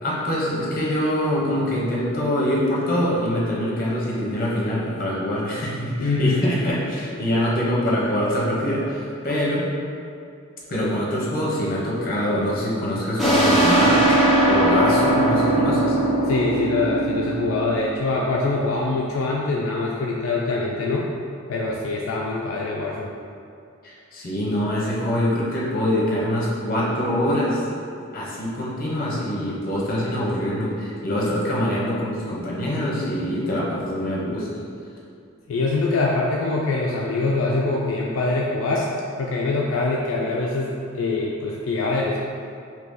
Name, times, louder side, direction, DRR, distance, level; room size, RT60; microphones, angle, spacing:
voice 1, 0.0-9.7 10.7-14.2 14.5-16.0 23.8-27.6 28.1-34.5, equal, 45° left, -5 dB, 0.8 m, -24 dB
voice 2, 6.0-6.6 16.2-21.1 21.5-23.1 35.5-38.9 39.2-42.2, left 3 dB, 75° left, -3 dB, 0.3 m, -24 dB
sound 1, 13.2-18.5, right 1 dB, ahead, 0.6 m, -20 dB
2.8 x 2.7 x 3.6 m, 2.5 s
head